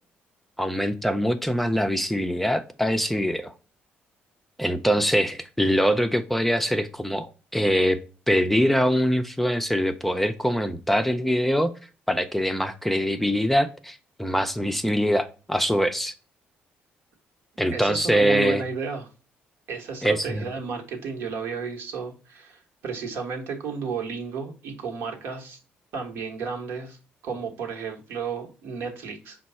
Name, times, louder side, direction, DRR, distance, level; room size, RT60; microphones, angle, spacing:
voice 1, 0.6-3.5 4.6-8.0 8.3-11.7 12.1-16.1 17.6-18.6 20.0-20.4, equal, 5° left, 0.4 m, -23 dB
voice 2, 17.7-19.1 19.7-25.6 25.9-27.0 27.2-29.4, right 5 dB, 80° right, 1.1 m, -32 dB
5.1 x 2.3 x 4.2 m
cardioid pair, 90°, 4 cm